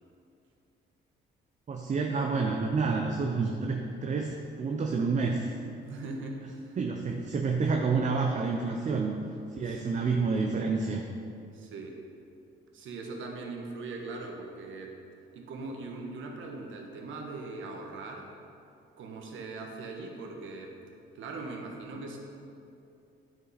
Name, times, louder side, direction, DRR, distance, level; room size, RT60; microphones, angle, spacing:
voice 1, 1.7-5.5 6.8-9.2 9.5-11.0, right 4 dB, 40° right, 2 dB, 0.6 m, -29 dB
voice 2, 5.8-6.8 9.6-9.8 11.5-12.0 12.7-15.0 15.3-18.3 19.0-20.8 21.1-22.2, right 3 dB, 80° right, 1 dB, 1.2 m, -40 dB
9.4 x 5.3 x 4.1 m, 2.6 s
cardioid pair, 90°, 20 cm